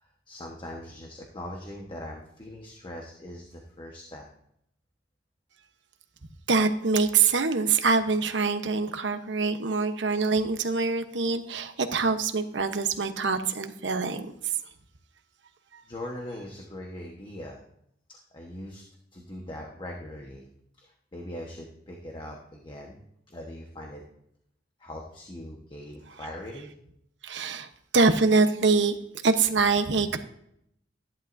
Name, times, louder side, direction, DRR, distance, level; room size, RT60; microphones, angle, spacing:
voice 1, 0.0-4.3 15.9-17.6 18.1-18.8 19.1-20.4 20.8-23.0 23.3-24.0 24.8-26.7, left 1 dB, 25° left, 0 dB, 1.2 m, -41 dB
voice 2, 6.5-14.3 15.7-15.8 27.2-27.7 27.9-29.0 29.2-30.2, right 4 dB, 90° right, 8 dB, 1.0 m, -24 dB
15.0 x 11.0 x 2.7 m, 0.74 s
head